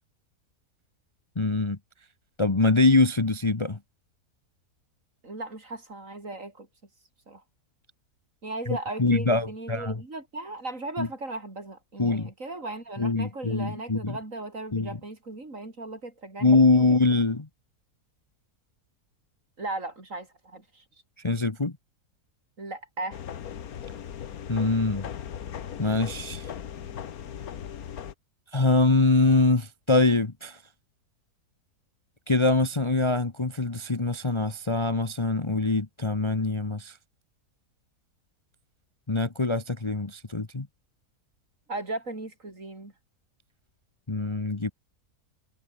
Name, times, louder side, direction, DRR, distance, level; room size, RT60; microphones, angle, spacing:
voice 1, 1.4-1.8 2.4-3.8 8.7-10.0 11.0-11.1 12.0-12.3 13.0-14.2 14.7-15.0 16.4-17.5 21.2-21.7 24.5-25.1 25.8-26.5 28.5-30.6 32.3-37.0 39.1-40.7 44.1-44.7, left 3 dB, 20° left, 1.1 m, -24 dB
voice 2, 5.2-6.7 7.3-7.4 8.4-16.9 19.6-20.8 22.6-23.2 41.7-42.9, right 2 dB, 50° right, 5.0 m, -37 dB
sound 1, 23.1-28.1, left 9 dB, 65° left, 1.6 m, -38 dB
omnidirectional pair, 1.7 m